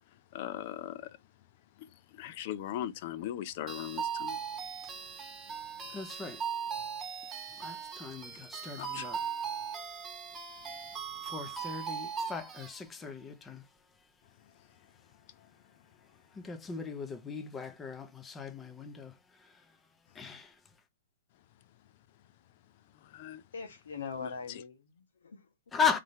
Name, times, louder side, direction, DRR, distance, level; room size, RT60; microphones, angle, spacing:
voice 1, 0.3-1.2 1.8-4.4 8.8-9.1 23.0-23.4 24.2-24.3, left 11 dB, 45° left, 0.5 m, -39 dB
sound 1, 3.7-12.8, right 7 dB, 15° right, 1.3 m, -39 dB
voice 2, 5.9-6.5 7.6-9.2 9.7-9.8 11.2-13.7 16.3-19.8 20.1-20.6 25.7-26.0, left 6 dB, 15° left, 0.8 m, -37 dB
voice 3, 23.5-25.7, left 5 dB, 80° left, 1.5 m, -42 dB
3.8 x 3.3 x 4.2 m
hypercardioid pair, 140°, 0 cm